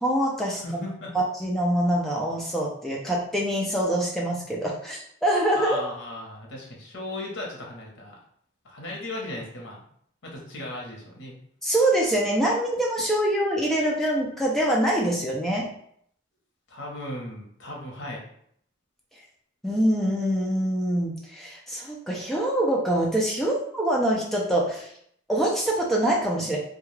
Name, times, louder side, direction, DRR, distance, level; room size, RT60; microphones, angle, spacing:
voice 1, 0.0-0.8 1.1-5.8 11.6-15.7 19.6-24.9 25.3-26.6, right 1 dB, ahead, -4 dB, 0.4 m, -24 dB
voice 2, 0.6-1.1 5.5-8.2 8.6-9.8 10.2-11.4 16.7-18.2, left 1 dB, 85° left, -1 dB, 0.8 m, -36 dB
2.3 x 2.3 x 3.1 m, 0.67 s
head